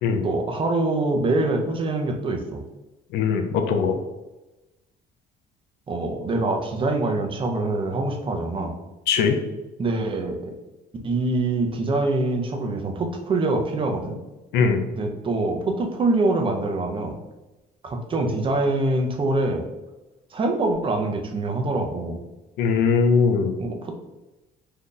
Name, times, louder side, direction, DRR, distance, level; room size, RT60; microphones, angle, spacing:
voice 1, 0.2-2.6 5.9-8.7 9.8-10.6 11.0-14.2 15.0-17.1 17.8-19.6 20.3-22.2 23.6-23.9, right 2 dB, 30° right, 3 dB, 0.6 m, -24 dB
voice 2, 3.1-4.0 9.1-9.4 14.5-14.8 22.6-23.5, left 5 dB, 80° left, 5 dB, 0.5 m, -20 dB
2.7 x 2.4 x 3.7 m, 1.0 s
cardioid pair, 110°, 17 cm